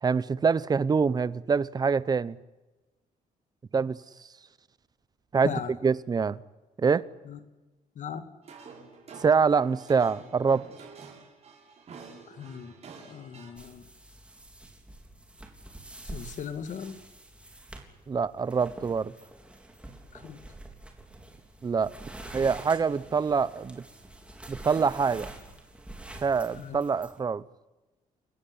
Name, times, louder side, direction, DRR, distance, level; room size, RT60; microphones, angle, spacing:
voice 1, 0.0-2.4 3.7-4.0 5.3-5.5 5.8-6.4 6.8-7.0 9.2-10.7 18.1-19.1 21.6-21.9 22.3-23.8 24.5-25.3 26.2-27.4, right 5 dB, 25° right, 0.8 m, -25 dB
voice 2, 8.0-8.3 12.3-12.7 13.0-13.9 16.0-17.0 20.1-20.4 26.5-26.8, left 7 dB, 55° left, 2.3 m, -38 dB
sound 1, 8.4-13.5, right 5 dB, 45° right, 7.8 m, -48 dB
sound 2, 13.6-27.2, right 1 dB, 5° right, 3.7 m, -46 dB
29.5 x 16.0 x 9.9 m
cardioid pair, 145°, 16 cm